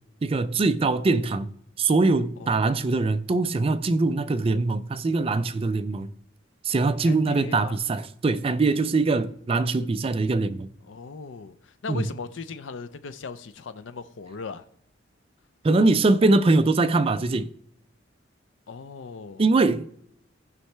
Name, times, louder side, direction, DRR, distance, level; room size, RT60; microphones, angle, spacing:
voice 1, 0.2-1.5 1.8-6.1 6.6-10.7 11.9-12.1 15.6-17.5 19.4-19.9, right 3 dB, 30° right, 0.4 m, -22 dB
voice 2, 2.4-2.9 7.1-7.8 10.9-14.6 18.7-19.4, left 4 dB, 75° left, 0.5 m, -38 dB
14.5 x 5.4 x 3.3 m
head